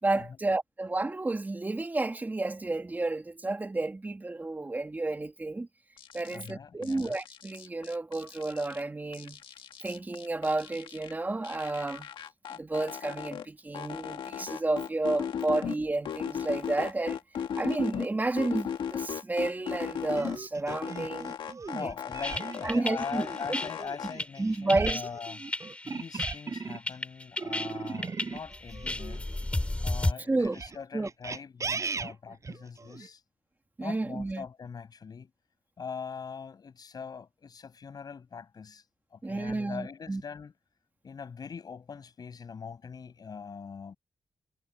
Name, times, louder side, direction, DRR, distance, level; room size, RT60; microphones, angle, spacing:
voice 1, 0.0-5.7 6.1-9.4 9.8-12.1 12.5-17.2 17.6-21.3 21.8-21.9 22.6-23.6 24.4-25.0 30.3-30.6 30.9-31.1 33.8-34.4 39.2-40.2, right 2 dB, 20° right, 2.9 m, -31 dB
sound 1, 6.0-6.5 6.8-8.8 9.1-11.1 11.4-13.5 13.7-15.8 16.1-18.1 18.4-20.4 20.7-22.7 23.0-24.1, left 8 dB, 85° left, 1.6 m, -37 dB
voice 2, 6.3-7.2 21.7-25.4 25.8-29.3 29.8-33.2 33.8-35.3 35.8-38.8 39.1-40.5 41.0-44.0, left 6 dB, 50° left, 6.6 m, -42 dB
sound 2, 20.2-27.0 27.4-29.7 30.4-33.1, right 4 dB, 40° right, 7.1 m, -38 dB
sound 3, 22.2-30.1, left 2 dB, 15° left, 4.5 m, -33 dB
cardioid pair, 105°, 8 cm